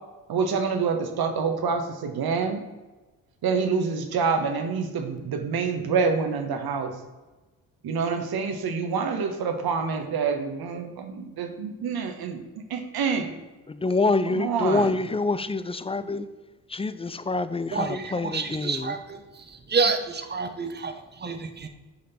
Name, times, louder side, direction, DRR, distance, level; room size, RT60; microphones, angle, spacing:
voice 1, 0.3-2.6 3.4-6.9 7.8-12.4 12.7-13.3 14.3-14.9, right 5 dB, 60° right, 1.4 m, -27 dB
voice 2, 13.7-16.3 16.7-18.9, left 3 dB, 15° left, 0.5 m, -26 dB
voice 3, 17.7-21.7, right 4 dB, 25° right, 1.1 m, -29 dB
9.5 x 5.1 x 4.4 m
hypercardioid pair, 45°, 43 cm